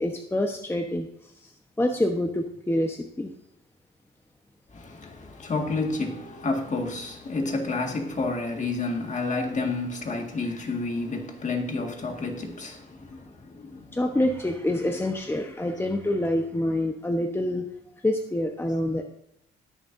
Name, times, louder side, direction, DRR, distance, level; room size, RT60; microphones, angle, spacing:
voice 1, 0.0-1.5 1.8-3.3 13.1-13.2 13.9-17.7 18.0-19.0, left 1 dB, 10° left, 1.1 m, -27 dB
voice 2, 4.7-13.9, left 3 dB, 40° left, 1.9 m, -30 dB
20.0 x 6.9 x 2.7 m
cardioid pair, 90°, 20 cm